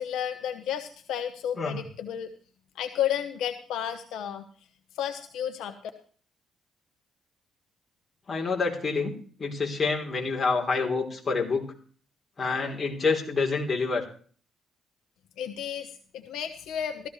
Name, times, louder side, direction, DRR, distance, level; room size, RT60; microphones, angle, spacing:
voice 1, 0.0-2.3 2.7-4.4 4.9-5.8 15.4-17.1, left 9 dB, 85° left, 7 dB, 1.1 m, -32 dB
voice 2, 8.3-9.1 9.4-11.6 12.4-14.1, left 4 dB, 35° left, 0 dB, 3.5 m, -27 dB
15.0 x 14.0 x 3.2 m, 0.43 s
cardioid pair, 90°, 0 cm